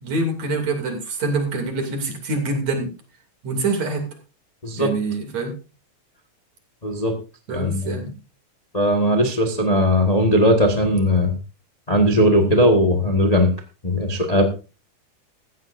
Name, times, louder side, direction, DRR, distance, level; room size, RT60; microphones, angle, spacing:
voice 1, 0.0-2.9 3.4-4.1 4.8-5.5 7.5-8.1, right 3 dB, 60° right, 4 dB, 3.9 m, -25 dB
voice 2, 6.8-7.1 7.5-8.0 8.7-11.3 11.9-13.5 13.8-14.4, equal, 25° left, 4 dB, 0.7 m, -18 dB
16.0 x 14.5 x 2.6 m, 0.32 s
omnidirectional pair, 3.5 m